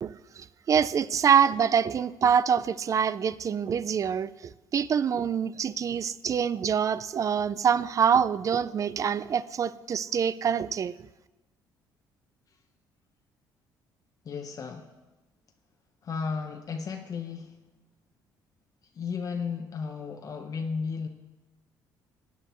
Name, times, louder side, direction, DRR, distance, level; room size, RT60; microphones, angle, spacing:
voice 1, 0.0-10.9, right 7 dB, 45° right, 0.4 m, -25 dB
voice 2, 14.2-14.9 16.0-17.5 18.9-21.1, left 5 dB, 45° left, 0.9 m, -34 dB
15.5 x 9.5 x 3.1 m
supercardioid pair, 80°, 8 cm